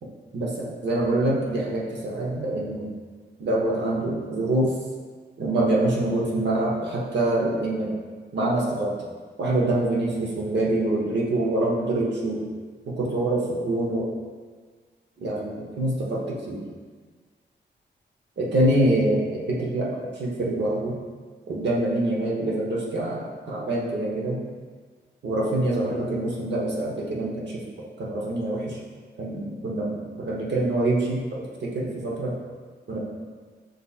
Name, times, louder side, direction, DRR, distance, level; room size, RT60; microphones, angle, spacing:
voice 1, 0.3-2.9 3.4-4.7 5.4-8.0 8.3-9.1 9.4-12.5 12.9-14.1 15.2-16.6 18.4-20.9 21.5-24.4 25.2-27.6 28.0-28.8 29.2-32.4 32.9-33.0, right 1 dB, 70° right, -3 dB, 0.9 m, -25 dB
6.3 x 2.7 x 2.4 m, 1.5 s
cardioid pair, 65°, 19 cm